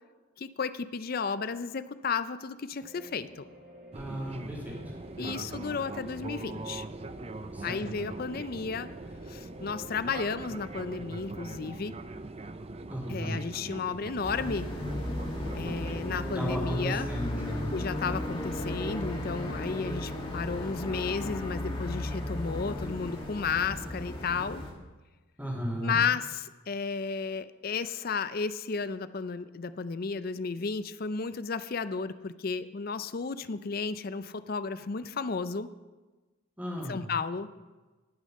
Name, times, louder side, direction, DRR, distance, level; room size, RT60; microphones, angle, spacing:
voice 1, 0.4-3.5 5.2-6.9 7.6-8.9 9.3-12.0 13.1-14.7 15.5-17.1 17.7-24.6 25.8-35.7 36.9-37.5, left 5 dB, 45° left, 13 dB, 0.5 m, -33 dB
sound 1, 2.8-11.7, equal, 55° right, 2.8 m, -52 dB
voice 2, 3.9-4.8 5.2-5.5 7.5-7.8 12.9-13.3 16.3-17.7 25.4-26.0 36.6-37.0, equal, 10° right, -3 dB, 2.8 m, -34 dB
Fixed-wing aircraft airplane, 3.9-16.6, right 2 dB, 30° right, 0.5 m, -42 dB
sound 2, 14.2-24.7, left 1 dB, 25° left, 1.9 m, -35 dB
18.0 x 6.6 x 6.5 m, 1.2 s
head